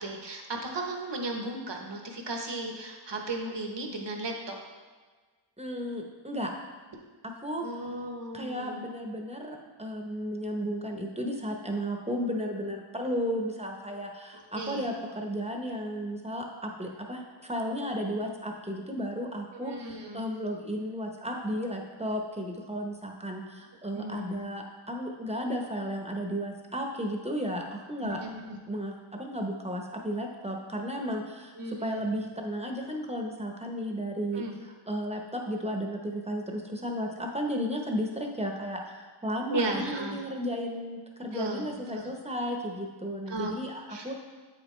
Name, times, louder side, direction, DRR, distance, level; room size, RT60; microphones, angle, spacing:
voice 1, 0.0-4.5 7.6-8.8 14.5-14.9 19.5-20.2 23.9-24.4 28.0-28.6 31.6-32.3 34.3-34.6 39.5-40.2 41.3-42.1 43.3-43.5 43.9-44.0, right 2 dB, 60° right, 2 dB, 1.1 m, -35 dB
voice 2, 5.6-6.5 7.4-7.6 8.3-28.2 28.7-34.4 34.9-44.1, equal, 15° right, 1 dB, 1.0 m, -34 dB
8.0 x 5.2 x 3.3 m, 1.4 s
wide cardioid pair, 50°, 48 cm